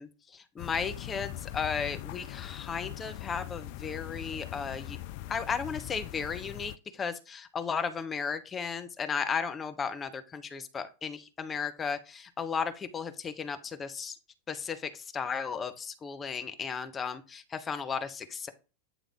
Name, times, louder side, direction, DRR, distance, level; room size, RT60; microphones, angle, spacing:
voice 1, 0.0-5.0 5.3-14.2 14.5-18.5, left 6 dB, 20° left, 8 dB, 0.8 m, -35 dB
sound 1, 0.6-6.8, left 15 dB, 45° left, 0.3 m, -41 dB
9.1 x 3.4 x 3.7 m, 0.32 s
figure-of-eight pair, 90°, 0 cm